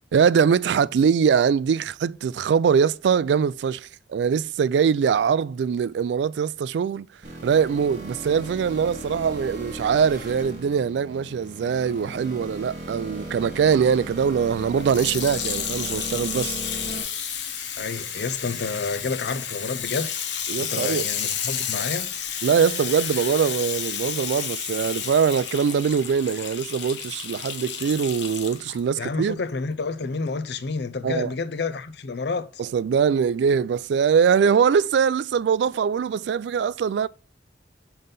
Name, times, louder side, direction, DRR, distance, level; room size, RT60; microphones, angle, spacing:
voice 1, 0.1-7.1 7.4-16.6 20.5-21.1 22.4-29.4 31.0-31.3 32.6-37.1, right 7 dB, 70° right, 0.3 m, -22 dB
sound 1, 7.2-17.0, right 1 dB, 50° right, 2.8 m, -37 dB
Water tap faucet / Sink (filling or washing), 14.8-28.8 29.5-29.6, left 8 dB, 85° left, 0.9 m, -31 dB
voice 2, 17.8-20.1 20.6-22.1 29.0-32.6, left 4 dB, 70° left, 0.6 m, -29 dB
5.5 x 3.9 x 5.3 m
head